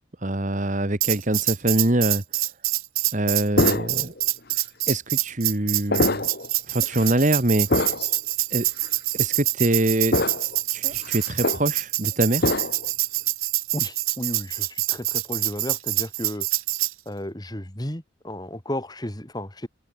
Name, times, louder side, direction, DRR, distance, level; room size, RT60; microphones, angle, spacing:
voice 1, 0.2-2.2 3.1-4.1 4.9-6.3 6.7-7.7 8.5-8.7 9.2-10.2 10.7-12.5, right 1 dB, 35° right, 1.6 m, -24 dB
Tambourine, 1.0-16.9, right 17 dB, 85° right, 1.3 m, -25 dB
sound 1, 3.6-4.2 4.8-5.0 5.9-6.5 6.9-7.1 7.7-8.2 8.8-8.9 10.1-10.6 10.9-11.6 12.4-12.9, left 2 dB, 50° left, 1.7 m, -24 dB
voice 2, 13.7-16.5 17.1-19.7, left 1 dB, 20° left, 2.2 m, -33 dB
head